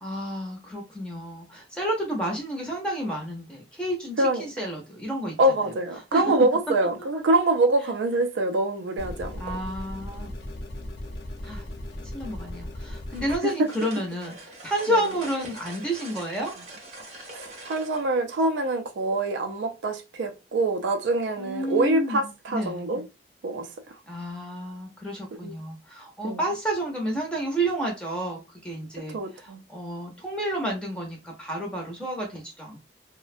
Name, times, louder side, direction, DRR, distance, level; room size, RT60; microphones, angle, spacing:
voice 1, 0.0-5.4 6.1-6.2 9.4-10.3 11.4-11.6 12.1-16.5 21.4-22.9 24.1-32.9, right 1 dB, 5° left, 0.5 m, -30 dB
voice 2, 5.4-9.4 13.4-13.5 14.9-15.0 17.3-23.0 23.4-23.7 25.4-25.5 26.2-26.4 29.1-29.6, right 2 dB, 85° right, 0.4 m, -25 dB
sound 1, 9.0-13.4, left 1 dB, 75° left, 0.6 m, -37 dB
sound 2, 13.1-18.1, right 2 dB, 40° right, 0.7 m, -43 dB
2.4 x 2.1 x 2.5 m
head